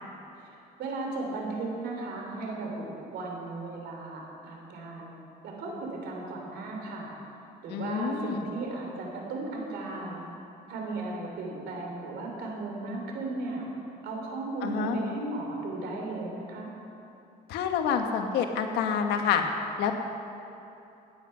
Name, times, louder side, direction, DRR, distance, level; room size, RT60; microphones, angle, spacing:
voice 1, 0.8-5.1 5.4-7.1 7.6-10.3 10.7-13.6 14.0-16.7, right 2 dB, 80° right, 0 dB, 3.3 m, -36 dB
voice 2, 7.7-8.4 14.6-15.0 17.5-19.4 19.8-19.9, left 7 dB, 85° left, 5 dB, 1.3 m, -27 dB
15.5 x 10.0 x 5.6 m, 2.8 s
cardioid pair, 110°, 17 cm